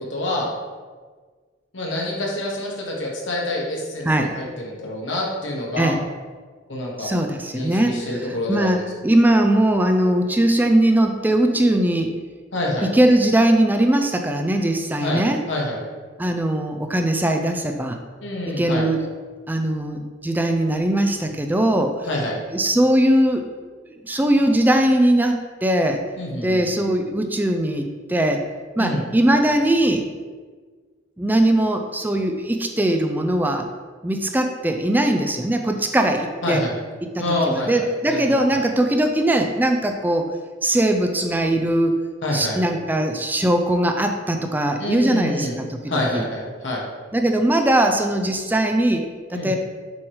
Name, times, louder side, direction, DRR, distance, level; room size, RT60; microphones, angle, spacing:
voice 1, 0.1-0.5 1.7-6.0 6.7-7.1 7.5-8.8 12.5-12.9 15.0-15.2 15.5-15.8 18.2-18.8 22.0-22.4 26.2-26.6 28.8-29.0 36.4-36.7 37.2-38.6 42.2-42.6 44.8-45.6 45.9-46.8 49.3-49.6, left 1 dB, 85° left, -2 dB, 1.5 m, -27 dB
voice 2, 7.0-8.0 8.5-12.1 12.8-15.4 16.2-18.0 18.6-19.0 19.5-22.1 22.5-23.5 24.0-26.0 26.4-28.5 28.8-30.1 31.2-33.7 34.0-36.6 37.0-40.3 40.6-42.0 42.3-46.2 47.1-49.6, right 1 dB, 10° right, 4 dB, 0.4 m, -20 dB
7.1 x 3.2 x 4.7 m, 1.5 s
head